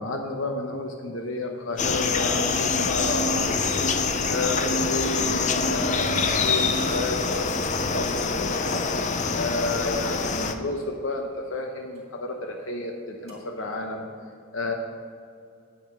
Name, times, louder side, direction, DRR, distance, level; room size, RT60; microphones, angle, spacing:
voice 1, 0.0-8.9 9.4-14.0 14.5-14.7, left 2 dB, 70° left, 3 dB, 0.9 m, -31 dB
sound 1, 1.2-3.4 4.1-4.5 5.0-5.3 6.0-9.3 11.1-12.8 13.3-13.9, right 2 dB, 35° right, 2.4 m, -49 dB
sound 2, 1.8-10.5, left 4 dB, 35° left, 0.5 m, -25 dB
9.0 x 8.5 x 5.4 m, 2.4 s
head